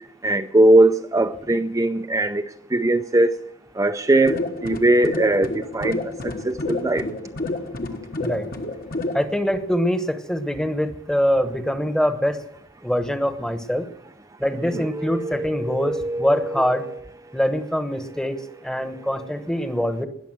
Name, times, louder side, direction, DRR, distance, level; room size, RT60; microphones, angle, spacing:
voice 1, 0.2-2.4 2.7-3.3 3.8-6.0 6.4-7.0 14.7-16.9, right 1 dB, 15° right, 0.5 m, -20 dB
sound 1, 4.2-9.2, left 2 dB, 50° left, 1.2 m, -29 dB
voice 2, 9.1-12.4 12.8-13.9 14.4-16.9 17.3-18.4 18.6-20.1, equal, 5° left, 1.1 m, -24 dB
20.0 x 6.8 x 7.8 m
head